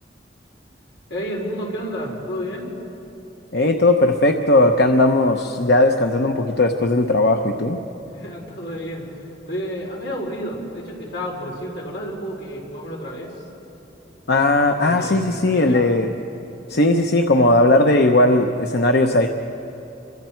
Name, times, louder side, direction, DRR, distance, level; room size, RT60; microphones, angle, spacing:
voice 1, 1.1-2.7 8.1-13.3 14.8-15.9, equal, 85° left, -2 dB, 4.8 m, -31 dB
voice 2, 3.5-7.8 14.3-16.1 16.7-19.3, left 2 dB, 65° left, 4 dB, 0.9 m, -17 dB
29.0 x 24.0 x 4.5 m, 2.9 s
head